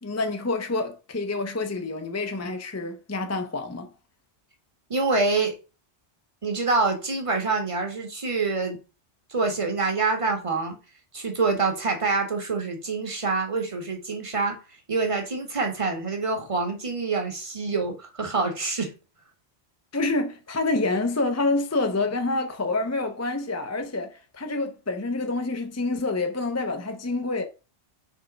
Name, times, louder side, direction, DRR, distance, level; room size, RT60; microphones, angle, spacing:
voice 1, 0.0-3.9 19.9-27.5, left 2 dB, 15° left, 0.6 m, -27 dB
voice 2, 4.9-5.5 6.4-8.8 9.3-10.8 11.1-14.6 14.9-18.9, right 3 dB, 30° right, 1.4 m, -26 dB
6.1 x 3.6 x 5.1 m
omnidirectional pair, 1.2 m